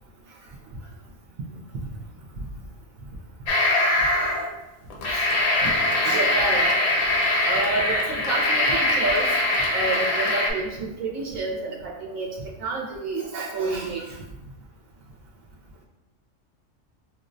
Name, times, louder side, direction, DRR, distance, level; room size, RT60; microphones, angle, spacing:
sound 1, 3.5-4.5 4.9-10.5, left 1 dB, 60° left, 0.8 m, -22 dB
voice 1, 6.0-6.9 7.4-9.3 9.7-14.2, right 3 dB, 85° right, -2 dB, 1.0 m, -29 dB
5.0 x 2.1 x 2.5 m, 0.98 s
omnidirectional pair, 1.3 m